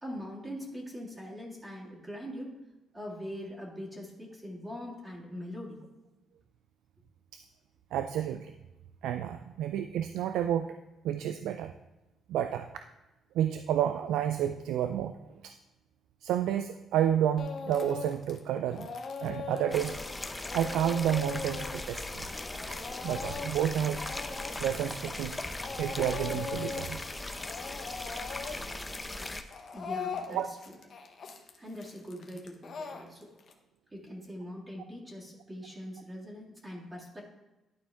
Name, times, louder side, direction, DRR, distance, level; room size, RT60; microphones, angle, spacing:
voice 1, 0.0-2.6 2.9-5.8 29.7-30.8 31.6-33.3 33.9-37.2, equal, 20° right, -5 dB, 2.1 m, -42 dB
voice 2, 7.9-8.5 9.0-10.7 11.0-11.7 12.3-12.7 13.3-15.2 15.4-15.5 16.2-18.9 19.2-20.0 20.5-22.2 22.7-22.8 23.0-24.0 24.6-25.4 25.8-27.0 30.3-30.5, right 10 dB, 90° right, 8 dB, 0.3 m, -30 dB
Speech / Crying sobbing, 17.4-18.4 18.7-25.3 25.6-27.0 27.3-33.5, left 5 dB, 55° left, 0.9 m, -40 dB
sound 1, 19.7-29.4, left 2 dB, 15° left, 0.6 m, -39 dB
11.0 x 4.4 x 3.5 m, 1.0 s
cardioid pair, 90°, 0 cm